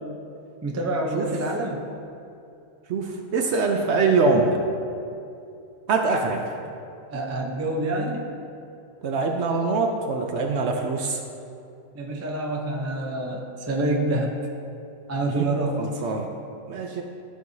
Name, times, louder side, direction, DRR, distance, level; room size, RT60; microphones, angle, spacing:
voice 1, 0.6-1.9 7.1-8.2 11.9-14.3 15.1-15.8, right 2 dB, 20° right, 0 dB, 0.4 m, -27 dB
voice 2, 2.9-4.6 5.9-6.5 9.0-11.2 15.4-15.5 15.8-16.3 16.7-17.0, right 4 dB, 65° right, 3 dB, 0.8 m, -23 dB
12.5 x 4.6 x 2.7 m, 2.6 s
omnidirectional pair, 1.4 m